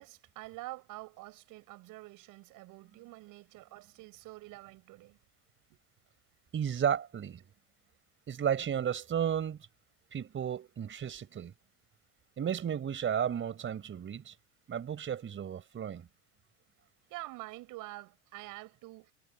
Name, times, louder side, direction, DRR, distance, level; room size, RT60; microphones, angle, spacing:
voice 1, 0.0-5.2 5.7-5.8 17.1-19.1, right 20 dB, 60° right, 7.6 m, -47 dB
voice 2, 6.5-7.4 8.3-9.6 10.1-11.5 12.4-14.3 14.7-16.1, right 8 dB, 30° right, 5.1 m, -33 dB
supercardioid pair, 105°, 37 cm